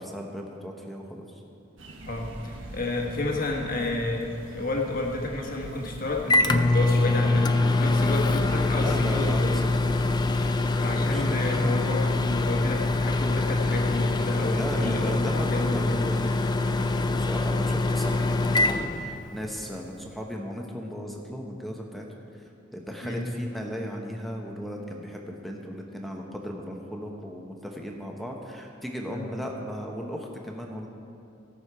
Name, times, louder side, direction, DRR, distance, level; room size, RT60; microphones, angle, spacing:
voice 1, 0.0-1.4 8.7-12.0 14.5-22.1 22.3-30.9, equal, ahead, 0 dB, 1.0 m, -37 dB
sound 1, 1.8-10.4, right 1 dB, 90° right, 1.2 m, -44 dB
voice 2, 2.0-9.6 10.8-16.1 23.0-23.2 29.1-29.3, left 2 dB, 45° left, 0 dB, 1.3 m, -30 dB
Microwave oven, 5.6-19.6, left 2 dB, 20° left, 0.3 m, -24 dB
17.0 x 6.5 x 4.8 m, 2.6 s
head